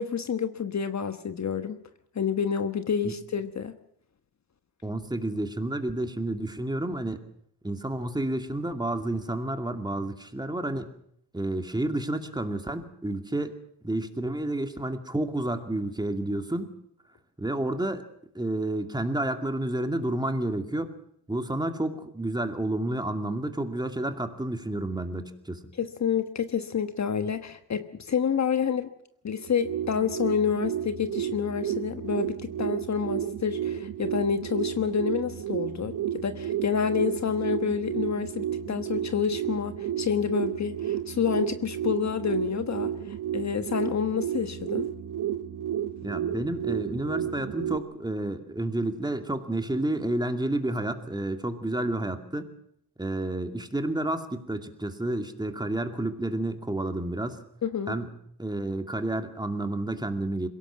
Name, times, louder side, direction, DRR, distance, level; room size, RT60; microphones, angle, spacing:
voice 1, 0.0-1.8 2.1-3.8 25.8-28.9 29.2-44.9 57.6-58.0, left 7 dB, 45° left, 10 dB, 1.3 m, -28 dB
voice 2, 4.8-7.2 7.6-10.9 11.3-13.5 13.8-16.7 17.4-18.1 18.3-20.9 21.3-25.6 46.0-52.5 53.0-57.4 57.9-58.1 58.4-60.5, right 1 dB, 10° right, 6 dB, 2.4 m, -30 dB
sound 1, 29.4-47.8, right 10 dB, 50° right, 1.0 m, -32 dB
22.0 x 17.5 x 7.5 m, 0.70 s
cardioid pair, 75°, 40 cm